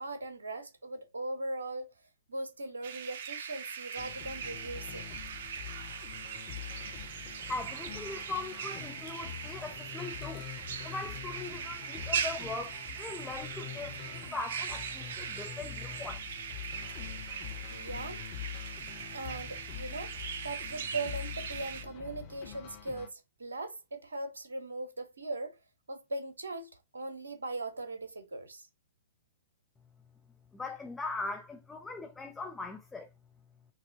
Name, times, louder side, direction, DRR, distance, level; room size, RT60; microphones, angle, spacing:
voice 1, 0.0-1.9 2.3-5.1 17.7-18.2 19.1-20.2 20.4-25.6 25.9-28.7, right 2 dB, 75° right, 1.0 m, -39 dB
sound 1, 2.8-21.8, right 7 dB, 55° right, 0.7 m, -40 dB
sound 2, 4.0-23.1, left 10 dB, 40° left, 1.2 m, -45 dB
voice 2, 7.5-10.5 10.8-16.2 30.5-33.1, left 3 dB, 10° left, 0.6 m, -40 dB
5.9 x 2.9 x 2.7 m
figure-of-eight pair, 110°, 0 cm